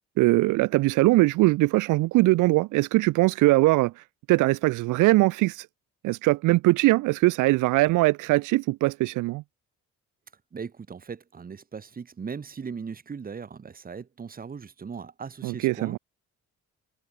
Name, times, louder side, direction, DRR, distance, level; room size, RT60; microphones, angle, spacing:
voice 1, 0.2-3.9 4.3-5.7 6.0-9.4 15.4-16.0, right 20 dB, 85° right, 0.5 m, -21 dB
voice 2, 10.5-16.0, right 6 dB, 30° right, 1.1 m, -38 dB
cardioid pair, 90°, 30 cm